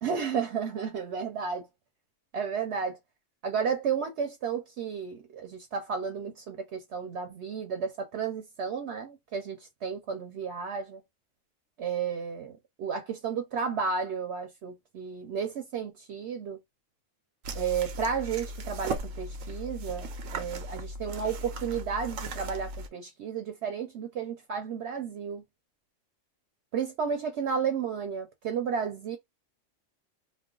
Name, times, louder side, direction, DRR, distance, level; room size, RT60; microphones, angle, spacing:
voice 1, 0.0-1.6 2.3-3.0 3.4-11.0 11.8-16.6 17.5-25.4 26.7-29.2, right 6 dB, 65° right, 0.9 m, -32 dB
sound 1, 17.4-22.9, right 2 dB, 90° right, 1.0 m, -37 dB
2.3 x 2.2 x 3.7 m
omnidirectional pair, 1.3 m